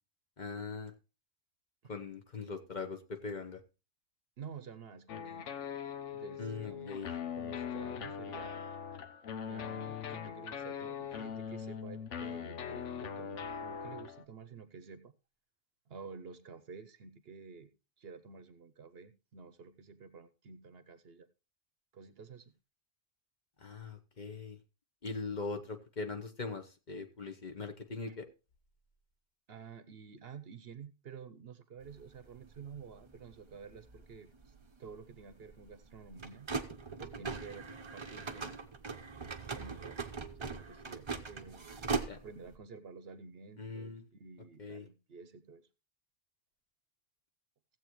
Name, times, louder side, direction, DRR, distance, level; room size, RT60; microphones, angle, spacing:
voice 1, 0.4-0.9 1.9-3.6 6.4-7.1 23.6-24.6 25.0-28.3 42.1-42.2 43.6-44.0 44.6-44.9, left 4 dB, 40° left, 5 dB, 1.0 m, -41 dB
voice 2, 4.4-5.5 6.1-8.6 9.5-15.1 15.9-17.7 18.0-21.3 21.9-22.5 28.1-28.2 29.5-34.5 34.8-36.5 37.0-37.7 37.9-38.5 39.5-40.0 40.4-41.7 42.1-45.7, right 5 dB, 60° right, 12 dB, 0.9 m, -50 dB
sound 1, 5.1-14.2, left 7 dB, 80° left, 1.2 m, -41 dB
sound 2, 31.8-42.6, right 4 dB, 30° right, 0.7 m, -41 dB
16.0 x 7.7 x 3.0 m, 0.30 s
omnidirectional pair, 1.2 m